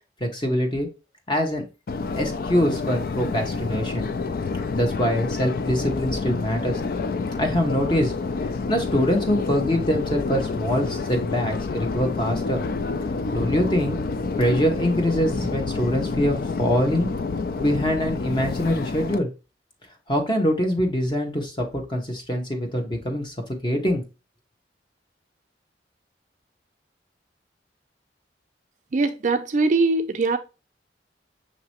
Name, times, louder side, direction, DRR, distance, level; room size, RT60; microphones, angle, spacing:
voice 1, 0.2-0.9 1.3-1.6 2.1-4.1 4.7-6.8 7.4-8.1 8.7-12.6 13.3-14.0 14.4-17.1 17.6-19.3 20.1-24.0, equal, 25° left, 1.0 m, -24 dB
Subway metro underground, 1.9-19.2, left 4 dB, 55° left, 0.3 m, -28 dB
voice 2, 28.9-30.4, right 3 dB, 45° right, 0.4 m, -21 dB
6.3 x 2.9 x 2.9 m
head